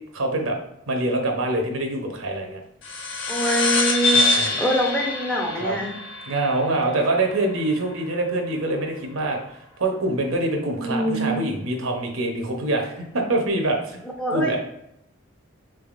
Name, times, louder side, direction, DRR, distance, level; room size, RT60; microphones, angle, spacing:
voice 1, 0.1-0.6 0.9-2.6 4.1-4.6 5.6-5.8 6.3-9.4 9.8-14.0 14.3-14.6, right 2 dB, 80° right, 2 dB, 0.7 m, -25 dB
sound 1, 2.8-7.7, left 3 dB, 60° left, 0.5 m, -25 dB
voice 2, 3.3-6.0 10.7-11.4 14.2-14.6, right 1 dB, 5° left, -1 dB, 0.5 m, -24 dB
3.7 x 3.4 x 2.4 m, 0.76 s
head